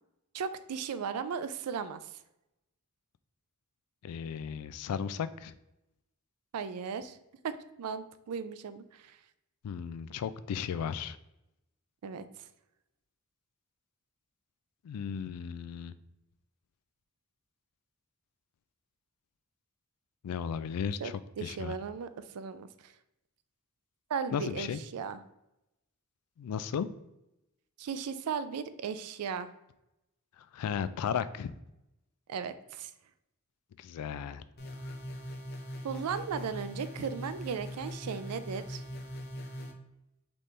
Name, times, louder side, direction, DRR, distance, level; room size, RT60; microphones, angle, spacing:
voice 1, 0.3-2.0 6.5-7.2 7.4-9.2 12.0-12.3 21.0-22.9 24.1-25.2 27.8-29.5 32.3-32.9 35.8-38.8, right 6 dB, 85° right, 12 dB, 0.4 m, -36 dB
voice 2, 4.0-5.5 9.6-11.2 14.8-15.9 20.2-21.7 24.3-24.8 26.4-26.9 30.4-31.5 33.8-34.4 34.9-35.0, left 7 dB, 85° left, 14 dB, 0.3 m, -35 dB
sound 1, 34.6-39.7, equal, 45° left, 0.6 m, -41 dB
4.0 x 3.4 x 3.1 m, 0.89 s
head